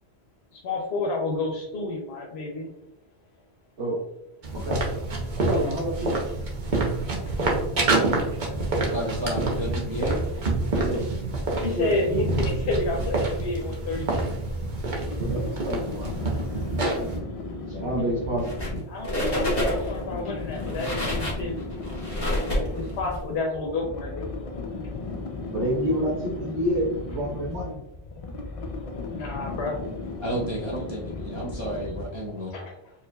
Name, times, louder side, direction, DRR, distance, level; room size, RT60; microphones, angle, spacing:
voice 1, 0.5-2.7 11.6-14.3 18.9-21.6 22.5-24.3 29.1-29.8 32.4-32.9, left 3 dB, 80° left, 0 dB, 0.9 m, -30 dB
sound 1, 4.4-17.2, right 2 dB, 50° right, 0.9 m, -27 dB
voice 2, 5.5-6.2 10.7-11.0 11.8-12.3 15.2-16.2 17.7-19.1 25.5-27.8, equal, 85° right, -7 dB, 1.3 m, -28 dB
voice 3, 8.9-10.2 10.7-10.9 30.2-32.5, equal, 30° right, -6 dB, 0.7 m, -31 dB
sound 2, 14.7-32.3, left 3 dB, 50° left, 0.4 m, -36 dB
sound 3, 18.4-18.8 19.0-20.0 20.5-23.2, left 1 dB, 25° left, 1.3 m, -28 dB
4.6 x 2.9 x 2.2 m, 0.86 s
omnidirectional pair, 1.1 m